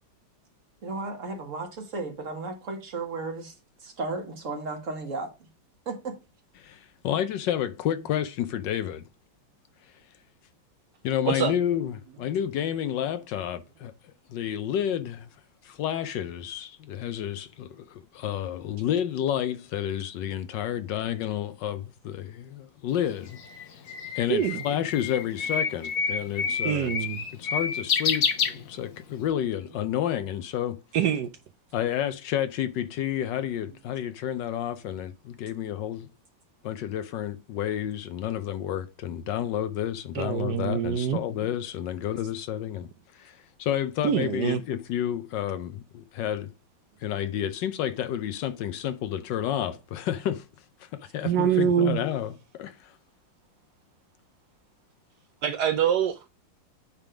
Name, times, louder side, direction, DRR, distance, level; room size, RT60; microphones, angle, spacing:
voice 1, 0.8-3.5 3.8-5.3 5.8-6.2, right 3 dB, 45° right, 1.7 m, -34 dB
voice 2, 6.6-9.1 9.8-10.2 11.0-23.8 24.1-26.9 27.3-30.8 31.7-36.1 36.6-46.5 47.0-53.0, left 10 dB, 70° left, 1.2 m, -30 dB
Bird, 22.9-29.2, left 6 dB, 55° left, 1.2 m, -29 dB
voice 3, 26.6-27.2 30.9-31.3 40.2-41.2 44.0-44.6 51.2-52.0 55.4-56.3, right 9 dB, 70° right, 1.0 m, -25 dB
9.0 x 3.6 x 4.9 m
omnidirectional pair, 2.1 m